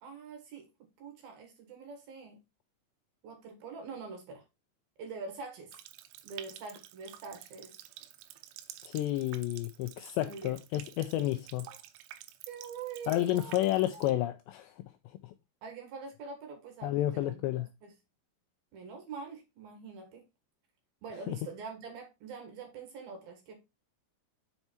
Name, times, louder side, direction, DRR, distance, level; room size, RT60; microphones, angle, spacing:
voice 1, 0.0-0.7 1.0-2.4 3.2-4.4 5.0-5.8 6.2-7.8 10.2-10.6 12.5-13.5 13.9-14.0 15.6-17.9 18.7-20.2 21.0-23.6, right 5 dB, 60° right, 3.0 m, -44 dB
Water tap faucet, 5.7-14.1, right 13 dB, 85° right, 3.3 m, -50 dB
voice 2, 8.8-11.6 13.1-14.7 16.8-17.7 21.3-21.4, left 14 dB, 85° left, 2.5 m, -30 dB
7.0 x 5.5 x 4.4 m
omnidirectional pair, 5.6 m